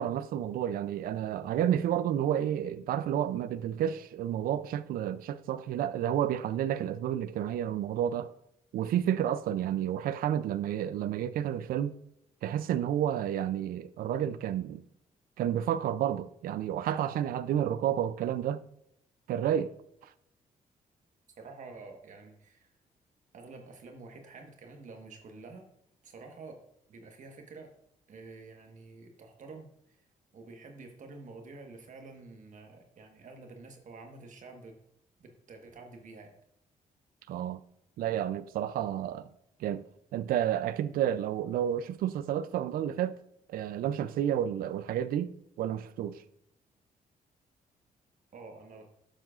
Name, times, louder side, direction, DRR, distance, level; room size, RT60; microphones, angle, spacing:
voice 1, 0.0-8.3 8.7-11.9 12.4-14.8 15.4-18.6 19.3-19.7 37.3-37.6 38.0-39.3 39.6-39.8 40.1-43.2 43.5-46.2, right 10 dB, 75° right, 0.4 m, -30 dB
voice 2, 21.4-22.7 23.3-25.7 26.0-26.6 26.9-27.7 28.1-30.0 30.3-34.8 35.2-36.4 48.3-48.9, right 3 dB, 60° right, 1.3 m, -49 dB
11.5 x 7.5 x 2.5 m
cardioid pair, 90°, 15 cm